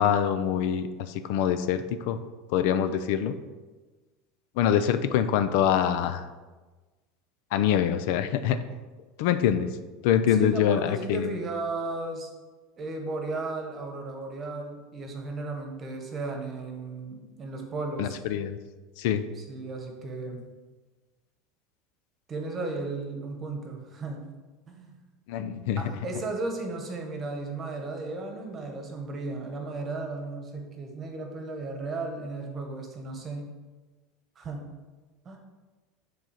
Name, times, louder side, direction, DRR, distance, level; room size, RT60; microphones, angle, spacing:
voice 1, 0.0-2.2 2.5-3.3 4.6-6.3 7.5-8.6 9.2-9.7 10.0-11.3 18.0-18.6 19.0-19.2 25.3-25.9, left 9 dB, 65° left, 10 dB, 0.4 m, -25 dB
voice 2, 10.3-12.3 12.8-18.2 19.4-20.4 22.3-24.2 24.7-24.9 25.8-33.5 34.4-34.7 35.2-35.4, right 3 dB, 25° right, 3 dB, 1.2 m, -35 dB
7.6 x 3.9 x 5.7 m, 1.3 s
supercardioid pair, 160°, 0 cm